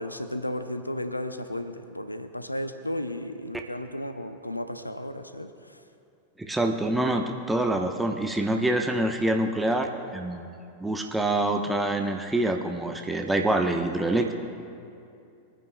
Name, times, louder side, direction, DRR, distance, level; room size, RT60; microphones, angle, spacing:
voice 1, 0.0-5.8, left 1 dB, 85° left, 9 dB, 0.5 m, -34 dB
voice 2, 6.4-14.3, right 1 dB, 5° right, 3 dB, 0.9 m, -26 dB
24.0 x 10.0 x 2.2 m, 2.6 s
figure-of-eight pair, 90°, 0 cm